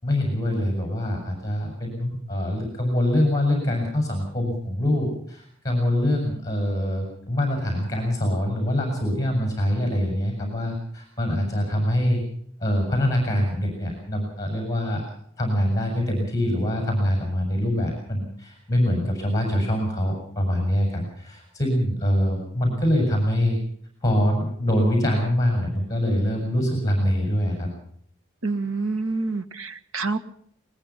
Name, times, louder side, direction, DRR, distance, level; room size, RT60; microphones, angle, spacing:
voice 1, 0.0-12.2 12.6-15.0 15.4-23.6 24.0-27.7, left 1 dB, 15° left, 2 dB, 6.5 m, -24 dB
voice 2, 28.4-30.2, right 3 dB, 75° right, 12 dB, 1.5 m, -27 dB
21.5 x 21.0 x 5.8 m, 0.63 s
head